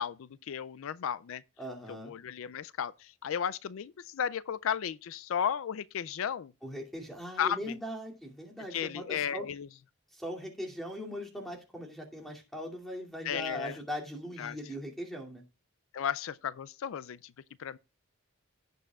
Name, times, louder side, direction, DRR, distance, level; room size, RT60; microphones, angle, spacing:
voice 1, 0.0-1.4 1.9-6.5 7.4-7.8 8.7-9.7 13.2-13.8 14.4-14.6 15.9-17.3 17.6-17.8, left 8 dB, 75° left, 0.4 m, -34 dB
voice 2, 1.6-2.1 6.6-9.5 10.1-15.4, equal, ahead, 2.5 m, -40 dB
16.5 x 6.9 x 2.3 m
head